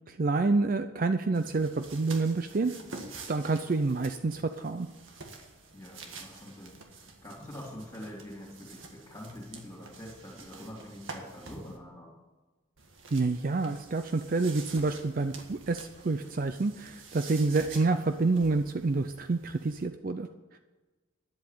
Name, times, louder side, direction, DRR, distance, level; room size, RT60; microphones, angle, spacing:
voice 1, 0.1-2.7 3.3-4.9 13.1-20.6, right 3 dB, 45° right, 9 dB, 0.5 m, -28 dB
sound 1, 1.3-11.8 12.8-19.9, right 4 dB, 75° right, 1.8 m, -48 dB
voice 2, 5.7-12.2, left 1 dB, 20° left, -6 dB, 3.0 m, -45 dB
10.5 x 8.1 x 8.5 m, 1.2 s
head